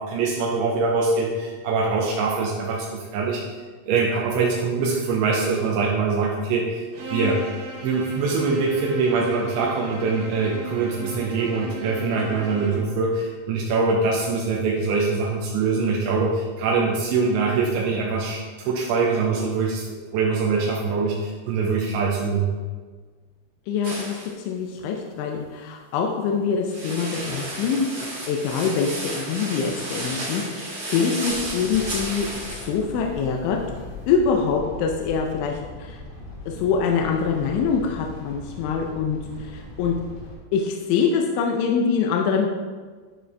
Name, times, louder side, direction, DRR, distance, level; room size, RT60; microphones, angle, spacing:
voice 1, 0.0-3.4 3.9-6.9 7.1-7.4 7.8-19.8 20.1-22.5, right 4 dB, 80° right, -2 dB, 3.0 m, -23 dB
Bowed string instrument, 6.9-12.9, equal, 65° right, 2.5 m, -36 dB
voice 2, 23.7-32.3 32.6-33.6 34.1-36.0 36.5-40.0 40.5-42.5, left 6 dB, 85° left, 1 dB, 3.0 m, -24 dB
sound 1, 23.8-24.3 26.7-32.7, right 2 dB, 45° right, 2.4 m, -33 dB
sound 2, 31.3-40.4, left 2 dB, 65° left, 3.1 m, -39 dB
12.5 x 5.2 x 3.4 m, 1.5 s
omnidirectional pair, 5.5 m